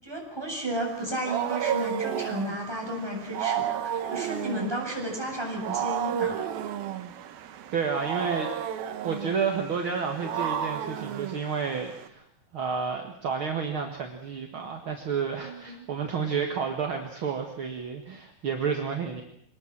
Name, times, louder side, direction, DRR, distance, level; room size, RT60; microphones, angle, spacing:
voice 1, 0.0-6.4 15.4-15.9, right 1 dB, 5° right, -1 dB, 7.4 m, -33 dB
Wild animals, 0.9-12.1, right 9 dB, 70° right, 3.0 m, -32 dB
voice 2, 7.7-8.5 9.0-12.2 12.5-19.2, right 6 dB, 45° right, 3 dB, 1.9 m, -30 dB
24.5 x 20.0 x 7.5 m, 0.72 s
omnidirectional pair, 4.7 m